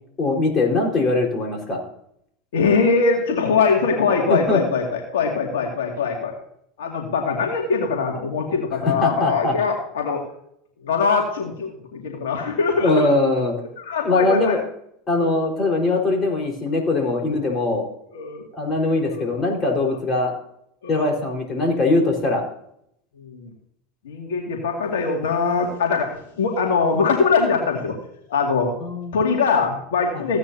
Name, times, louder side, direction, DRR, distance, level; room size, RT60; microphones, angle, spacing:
voice 1, 0.2-1.8 4.3-4.6 8.8-9.6 12.8-13.5 14.0-14.6 15.1-17.9 18.5-20.3 20.9-22.4 28.8-29.1 30.1-30.3, left 2 dB, 35° left, 0 dB, 4.6 m, -21 dB
voice 2, 2.5-6.4 6.8-10.2 10.8-13.1 13.8-14.6 18.1-18.4 18.8-19.2 20.8-21.1 23.2-23.5 24.0-28.0 28.3-28.7 29.1-30.4, left 5 dB, 80° left, 0 dB, 2.3 m, -22 dB
16.0 x 9.4 x 2.8 m, 0.72 s
hypercardioid pair, 90°, 0 cm